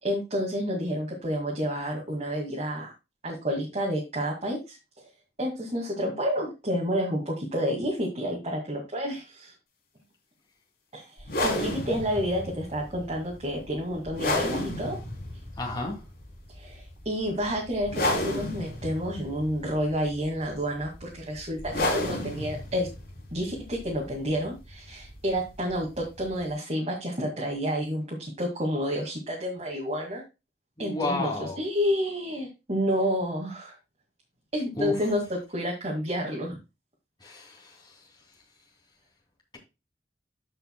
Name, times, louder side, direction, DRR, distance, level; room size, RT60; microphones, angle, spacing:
voice 1, 0.0-2.9 3.2-4.8 5.4-9.5 10.9-15.0 16.6-22.9 23.3-30.2 30.8-33.7 34.5-36.6, equal, 40° right, 2.2 m, -30 dB
sound 1, 11.2-26.5, left 1 dB, 55° left, 3.4 m, -33 dB
voice 2, 15.6-16.0 30.8-31.6 34.8-34.9 37.2-37.6, left 2 dB, 25° left, 2.8 m, -31 dB
13.5 x 5.6 x 2.3 m
head